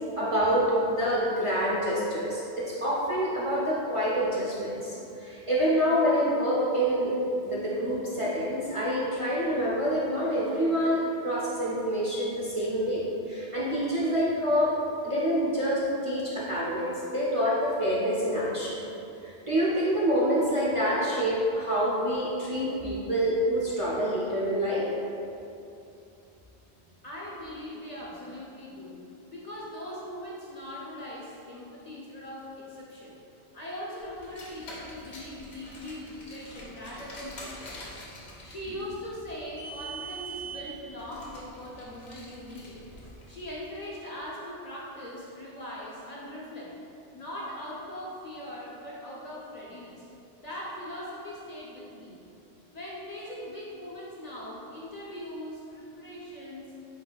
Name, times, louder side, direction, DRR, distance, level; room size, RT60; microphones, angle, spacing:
voice 1, 0.2-7.1 7.4-14.8 15.0-18.8 19.2-24.9, equal, 40° right, -8 dB, 0.5 m, -27 dB
voice 2, 27.0-29.0 29.3-33.2 33.5-37.8 38.4-42.8 43.3-46.8 47.1-50.1 50.4-52.2 52.7-56.7, left 1 dB, 45° left, -6 dB, 0.6 m, -40 dB
Car, 34.2-43.7, right 2 dB, 80° left, 1.1 m, -44 dB
4.2 x 4.1 x 2.2 m, 2.7 s
omnidirectional pair, 1.1 m